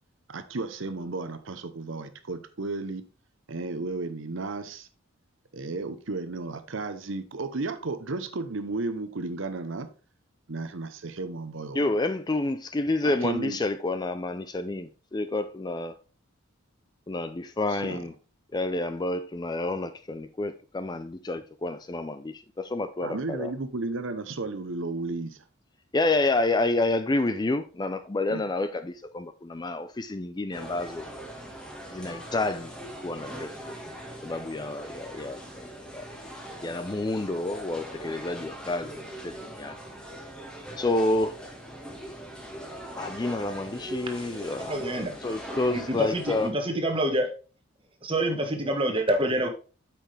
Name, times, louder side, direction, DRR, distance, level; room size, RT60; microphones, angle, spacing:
voice 1, 0.3-3.0 3.5-4.9 5.5-9.9 10.5-11.9 13.0-13.6 17.7-18.0 23.0-25.4 28.3-28.4, right 3 dB, 65° right, 0.8 m, -33 dB
voice 2, 11.7-16.0 17.1-18.1 18.5-23.5 25.9-31.1 31.9-32.7 33.0-33.8 34.2-35.7 35.9-36.1 36.6-39.8 40.8-41.4 42.9-46.5, left 2 dB, 20° left, 0.4 m, -29 dB
sound 1, 30.5-46.5, right 1 dB, 5° left, 1.6 m, -41 dB
voice 3, 44.6-45.1 45.7-47.3 48.0-49.5, right 1 dB, 25° right, 1.4 m, -27 dB
8.3 x 5.9 x 3.3 m
head